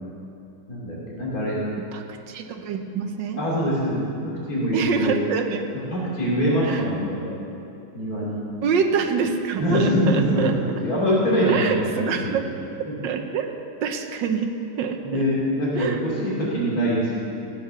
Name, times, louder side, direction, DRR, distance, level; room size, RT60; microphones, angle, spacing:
voice 1, 0.7-1.7 3.4-5.2 5.9-7.3 7.9-8.4 9.6-10.4 10.8-11.7 12.0-12.3 15.0-17.2, equal, 55° left, -7 dB, 3.5 m, -23 dB
voice 2, 1.8-3.4 4.7-5.7 6.6-6.8 8.6-10.6 11.4-12.5 12.8-13.5 13.8-15.2 15.7-16.0, right 6 dB, 85° right, 5 dB, 1.6 m, -26 dB
15.5 x 8.5 x 6.9 m, 2.8 s
omnidirectional pair, 2.0 m